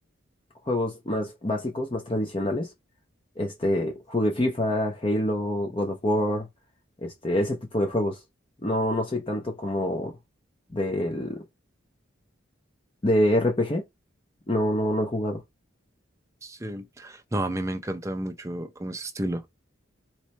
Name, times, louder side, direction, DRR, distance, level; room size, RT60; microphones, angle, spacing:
voice 1, 0.7-2.7 3.4-6.5 7.0-8.2 8.6-10.1 10.7-11.4 13.0-13.8 14.5-15.4, left 1 dB, 25° left, 0.7 m, -26 dB
voice 2, 16.4-19.5, right 1 dB, 15° right, 0.5 m, -32 dB
4.2 x 3.2 x 3.1 m
head